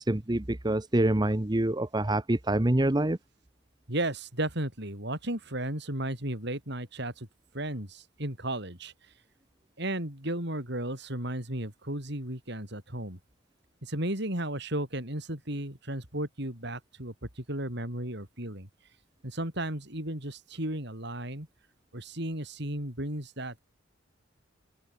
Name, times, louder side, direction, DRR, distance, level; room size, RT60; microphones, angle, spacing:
voice 1, 0.0-3.2, right 1 dB, 20° right, 1.0 m, -26 dB
voice 2, 3.9-7.3 7.5-8.9 9.8-13.2 13.8-18.7 19.2-21.5 21.9-23.6, right 1 dB, 60° right, 7.4 m, -34 dB
head